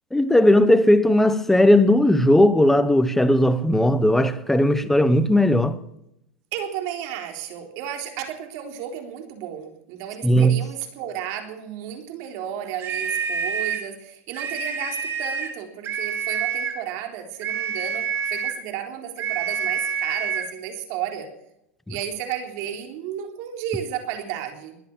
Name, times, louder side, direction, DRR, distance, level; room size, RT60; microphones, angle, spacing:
voice 1, 0.1-5.8 10.2-10.6 21.9-22.0, left 1 dB, 5° left, 1.0 m, -17 dB
voice 2, 6.5-21.3 21.9-24.8, right 9 dB, 55° right, 3.8 m, -33 dB
sound 1, 12.8-13.9 14.3-15.6 15.8-16.8 17.4-18.6 19.2-20.5, right 7 dB, 35° right, 2.8 m, -27 dB
21.5 x 8.3 x 7.2 m
supercardioid pair, 135°, 7 cm